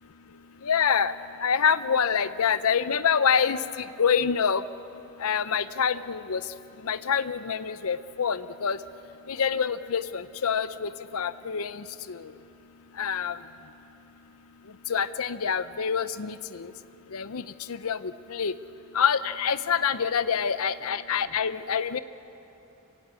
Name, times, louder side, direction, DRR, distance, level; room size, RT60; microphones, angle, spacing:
voice 1, 0.6-1.1 1.4-4.6 5.2-6.4 6.9-8.8 9.3-12.2 13.0-13.4 14.9-16.7 17.1-17.4 17.7-18.0 18.3-18.5 18.9-22.0, left 7 dB, 75° left, 13 dB, 0.6 m, -26 dB
26.5 x 17.0 x 8.3 m, 2.9 s
head